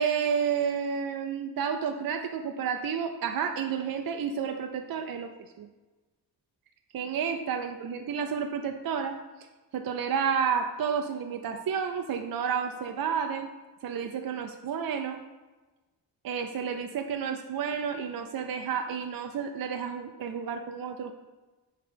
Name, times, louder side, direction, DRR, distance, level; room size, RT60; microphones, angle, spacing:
voice 1, 0.0-5.3 5.6-5.7 6.9-9.1 9.7-13.5 13.8-15.2 16.2-21.1, right 7 dB, 55° right, 5 dB, 0.6 m, -30 dB
6.6 x 3.3 x 5.1 m, 1.2 s
cardioid pair, 65°, 43 cm